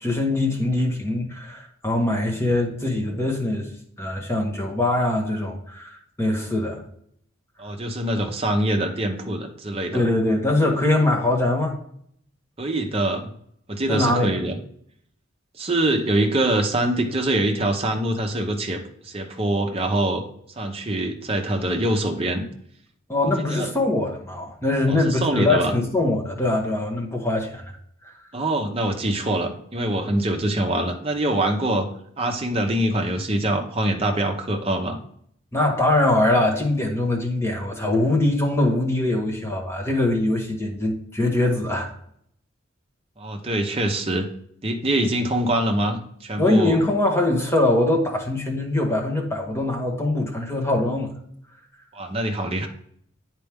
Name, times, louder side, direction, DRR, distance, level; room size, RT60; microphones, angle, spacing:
voice 1, 0.0-3.7 4.0-6.8 9.9-11.8 13.9-14.3 23.1-27.6 28.0-28.1 35.5-41.9 46.4-51.1, left 2 dB, 15° left, 0 dB, 1.3 m, -22 dB
voice 2, 7.6-10.1 12.6-13.3 13.7-14.6 15.6-20.2 20.6-22.4 23.5-23.7 24.9-25.7 28.3-31.9 32.2-35.0 43.2-44.3 44.6-46.8 51.9-52.7, right 1 dB, 30° right, 4 dB, 0.9 m, -24 dB
9.1 x 4.5 x 3.6 m, 0.67 s
head